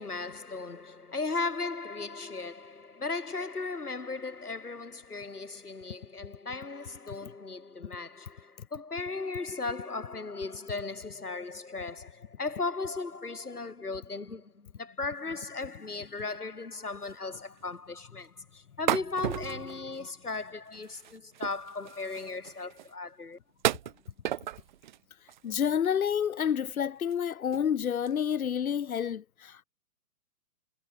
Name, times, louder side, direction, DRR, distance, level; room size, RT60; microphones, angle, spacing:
voice 1, 0.0-23.4, left 3 dB, 85° left, 2.8 m, -37 dB
sound 1, 16.2-16.4 16.7-16.8 17.0-17.4 17.6-17.7 18.9-20.4 20.7-22.9 23.6-25.0 25.3-25.9 26.4-26.5 27.0-27.2 27.5-27.7 28.1-28.2, right 12 dB, 35° right, 0.4 m, -35 dB
voice 2, 25.4-29.6, left 8 dB, 70° left, 1.6 m, -29 dB
figure-of-eight pair, 115°, 45 cm